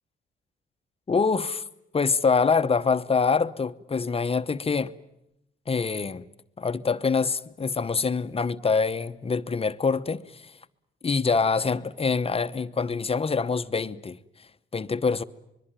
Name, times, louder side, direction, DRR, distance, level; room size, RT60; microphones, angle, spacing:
voice 1, 1.1-1.6 1.9-4.9 5.7-6.3 6.6-10.5 11.0-14.2 14.7-15.2, left 5 dB, 30° left, 0.9 m, -25 dB
25.5 x 22.5 x 9.1 m
cardioid pair, 90°, 20 cm